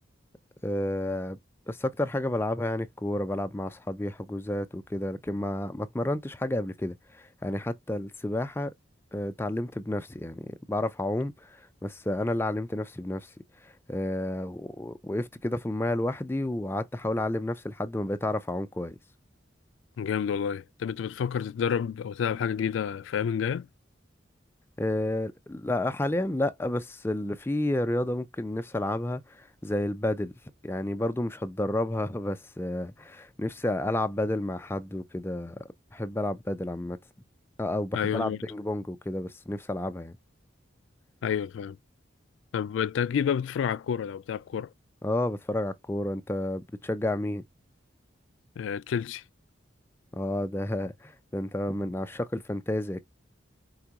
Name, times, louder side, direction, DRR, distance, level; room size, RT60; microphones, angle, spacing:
voice 1, 0.6-1.4 1.7-8.7 9.1-13.3 13.6-19.0 24.8-30.3 30.6-35.6 35.9-37.0 37.6-40.2 45.0-47.4 50.1-53.0, left 1 dB, 10° left, 0.4 m, -31 dB
voice 2, 20.0-23.7 37.9-38.4 41.2-41.8 42.5-44.7 48.6-49.2, left 7 dB, 80° left, 0.3 m, -29 dB
4.8 x 2.2 x 2.8 m
head